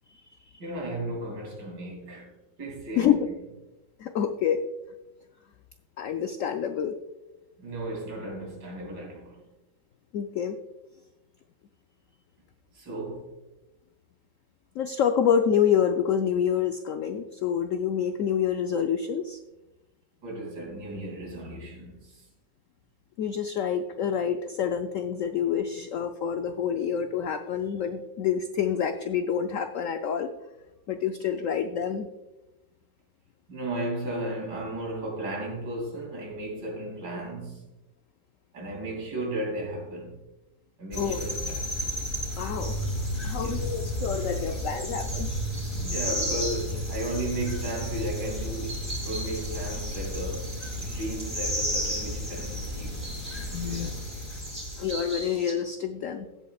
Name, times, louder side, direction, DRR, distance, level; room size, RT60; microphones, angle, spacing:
voice 1, 0.6-2.3 2.6-3.2 7.6-9.4 12.7-13.3 20.2-22.3 33.5-37.6 38.5-40.2 40.8-41.7 43.4-43.6 45.7-50.5 50.8-53.0 53.6-54.0, right 1 dB, 70° right, 3.4 m, -35 dB
voice 2, 4.0-4.6 6.0-7.0 10.1-10.6 14.8-19.4 23.2-30.3 30.9-32.1 41.0-41.2 42.4-42.8 43.2-45.3 53.5-53.9 54.3-54.4 54.8-56.3, left 8 dB, 85° left, 0.7 m, -27 dB
sound 1, 40.9-55.2, equal, 15° left, 2.6 m, -33 dB
sound 2, 42.6-55.5, equal, 15° right, 2.7 m, -37 dB
16.0 x 8.2 x 2.4 m
omnidirectional pair, 2.0 m